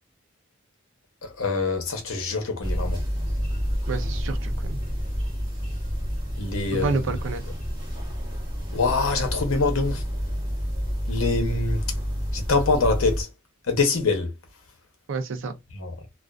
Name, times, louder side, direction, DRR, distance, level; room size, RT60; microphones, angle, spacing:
voice 1, 1.2-3.0 6.4-6.9 8.7-10.0 11.1-11.8 12.3-13.3 13.7-14.3 15.7-15.9, left 3 dB, 80° left, 0.7 m, -24 dB
sound 1, 2.6-13.2, equal, 20° right, 0.9 m, -29 dB
voice 2, 3.9-4.8 6.7-7.4 15.1-15.5, right 4 dB, 65° right, 0.4 m, -29 dB
2.4 x 2.3 x 2.3 m
head